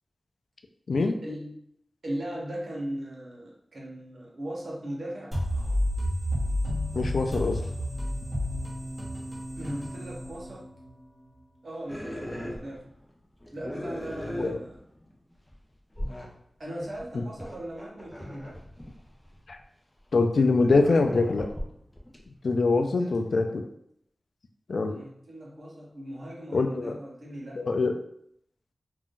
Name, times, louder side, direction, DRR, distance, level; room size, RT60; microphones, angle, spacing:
voice 1, 1.0-1.6 2.0-5.4 9.6-10.7 11.6-12.8 13.5-14.8 16.6-18.6 22.8-23.2 24.9-27.6, right 1 dB, 70° right, -2 dB, 0.9 m, -38 dB
sound 1, 5.3-10.9, equal, 25° right, 1.2 m, -31 dB
voice 2, 6.9-7.6 14.4-14.6 17.1-17.2 19.5-19.6 20.1-21.5 22.4-23.7 24.7-25.0 26.5-27.0 27.6-27.9, left 3 dB, 85° left, 5 dB, 0.3 m, -24 dB
sound 2, 11.9-13.1 13.4-15.1 15.5-15.6 15.9-16.3 16.8-19.6 20.3-22.2, equal, 15° left, 0.6 m, -37 dB
2.5 x 2.3 x 3.6 m, 0.72 s
wide cardioid pair, 75°, 0 cm